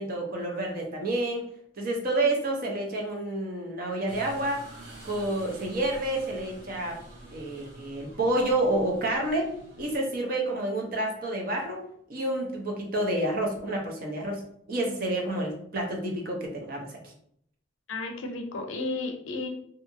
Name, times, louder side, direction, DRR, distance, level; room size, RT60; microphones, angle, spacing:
voice 1, 0.0-1.5 1.8-4.6 5.0-7.0 7.3-9.5 9.8-11.8 12.1-14.4 14.7-17.0, right 1 dB, 45° right, 0 dB, 0.6 m, -29 dB
sound 1, 4.1-10.0, right 1 dB, 60° right, 1.1 m, -47 dB
voice 2, 17.9-19.5, left 3 dB, 75° left, 3 dB, 0.5 m, -33 dB
2.7 x 2.5 x 2.6 m, 0.69 s
head